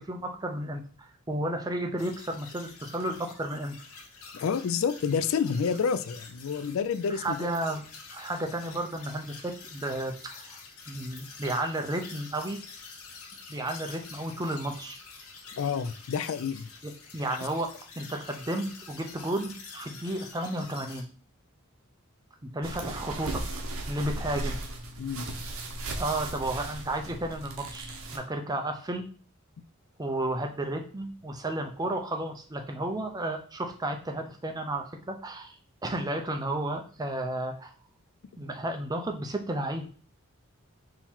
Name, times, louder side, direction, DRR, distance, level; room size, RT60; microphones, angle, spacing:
voice 1, 0.0-3.8 7.1-10.6 10.9-12.6 13.5-15.0 17.1-21.0 22.4-23.4 23.9-24.6 25.9-29.0 30.0-35.6 35.8-37.7 38.4-39.9, right 1 dB, 20° right, 0.5 m, -33 dB
sound 1, 2.0-21.0, left 4 dB, 85° left, 0.9 m, -47 dB
voice 2, 4.3-7.5 15.6-16.7 24.0-24.1 25.0-25.3, left 6 dB, 70° left, 0.4 m, -29 dB
sound 2, 22.6-28.2, right 2 dB, 65° right, 0.8 m, -36 dB
3.8 x 2.9 x 4.3 m
head